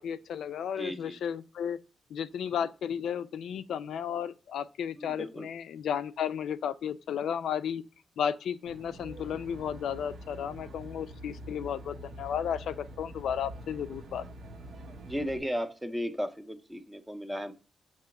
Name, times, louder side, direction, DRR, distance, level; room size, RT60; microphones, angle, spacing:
voice 1, 0.0-1.8 2.1-7.8 8.2-14.2, left 8 dB, 80° left, 0.4 m, -33 dB
voice 2, 0.8-1.2 5.0-5.5 15.1-17.5, equal, 5° right, 0.6 m, -35 dB
Aircraft, 8.7-15.4, right 1 dB, 55° right, 0.7 m, -45 dB
6.8 x 3.0 x 5.8 m
wide cardioid pair, 165°, 0 cm